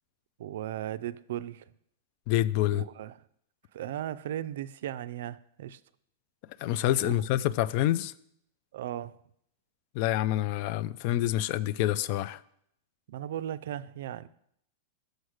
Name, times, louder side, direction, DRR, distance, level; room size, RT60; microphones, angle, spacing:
voice 1, 0.4-1.7 2.7-3.1 3.7-5.8 7.0-7.1 8.7-9.2 13.1-14.3, right 11 dB, 70° right, 0.3 m, -36 dB
voice 2, 2.3-2.8 6.6-8.1 9.9-12.4, left 13 dB, 50° left, 0.3 m, -27 dB
6.4 x 4.8 x 6.4 m
hypercardioid pair, 130°, 0 cm